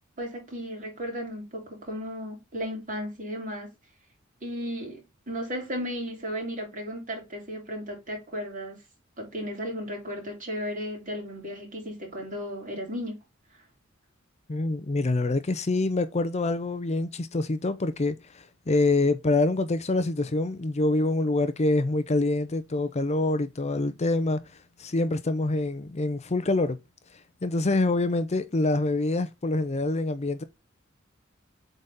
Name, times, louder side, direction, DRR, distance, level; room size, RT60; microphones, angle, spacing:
voice 1, 0.2-3.7 4.4-8.8 9.2-13.2 13.5-13.7, equal, 40° right, 3.5 m, -35 dB
voice 2, 14.5-24.4 24.8-26.8 27.4-30.4, left 2 dB, 35° left, 0.6 m, -26 dB
7.9 x 4.1 x 3.6 m
head